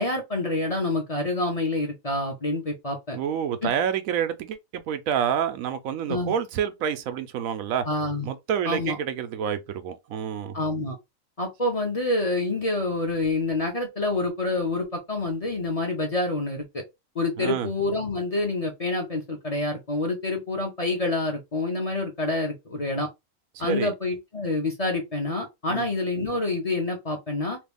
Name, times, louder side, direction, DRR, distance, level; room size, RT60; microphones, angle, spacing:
voice 1, 0.0-3.2 3.6-3.7 6.1-6.3 7.9-8.3 8.6-9.0 10.5-11.0 11.4-16.8 17.1-23.1 23.6-27.6, left 2 dB, 35° left, 0.8 m, -27 dB
voice 2, 3.1-7.9 8.2-10.6 17.4-17.7 23.5-23.9 25.7-25.9, right 8 dB, 85° right, 1.0 m, -28 dB
3.1 x 2.3 x 3.4 m
omnidirectional pair, 1.4 m